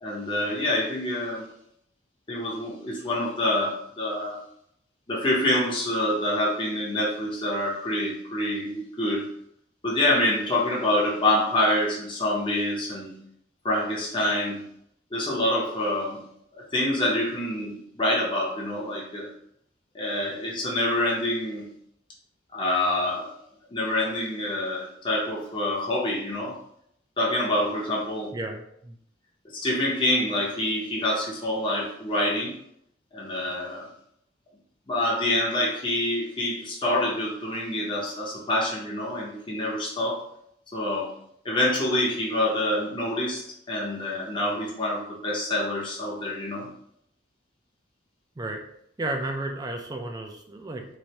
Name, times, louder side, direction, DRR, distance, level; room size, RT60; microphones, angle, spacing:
voice 1, 0.0-1.4 2.3-4.4 5.1-9.3 9.8-13.1 13.6-14.6 15.1-16.2 16.7-19.3 19.9-21.6 22.5-23.3 23.7-26.6 27.2-28.3 29.5-32.5 33.1-33.9 34.9-40.2 40.7-41.1 41.4-43.4 43.7-46.7, left 1 dB, 25° left, -4 dB, 0.7 m, -26 dB
voice 2, 28.3-29.0 48.4-48.6 49.0-50.9, right 2 dB, 20° right, 3 dB, 0.4 m, -32 dB
3.1 x 2.5 x 2.8 m, 0.72 s
head